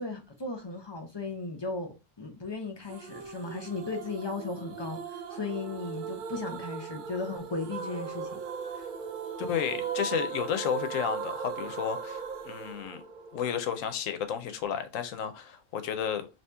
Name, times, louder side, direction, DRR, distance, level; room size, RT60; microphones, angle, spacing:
voice 1, 0.0-8.4, left 3 dB, 40° left, 0.4 m, -36 dB
sound 1, 2.9-13.8, right 6 dB, 65° right, 0.5 m, -38 dB
voice 2, 9.4-13.0 13.3-16.3, left 8 dB, 85° left, 1.0 m, -32 dB
2.9 x 2.9 x 3.3 m
omnidirectional pair, 1.3 m